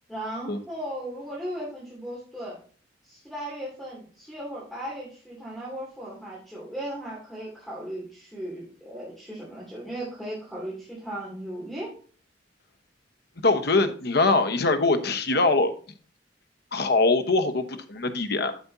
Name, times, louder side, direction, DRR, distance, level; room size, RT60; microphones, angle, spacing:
voice 1, 0.1-2.6 3.0-11.9, right 1 dB, ahead, 2.6 m, -36 dB
voice 2, 13.4-15.7 16.7-18.6, left 3 dB, 65° left, 1.1 m, -23 dB
8.5 x 7.1 x 2.7 m
head